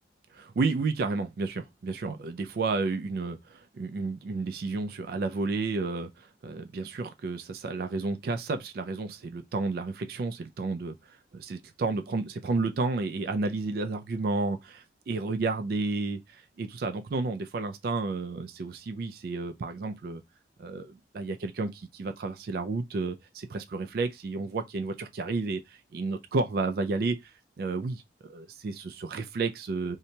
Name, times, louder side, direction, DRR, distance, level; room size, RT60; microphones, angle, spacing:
voice 1, 0.3-20.2 20.6-30.0, right 3 dB, 55° right, 0.3 m, -31 dB
2.8 x 2.1 x 2.7 m
head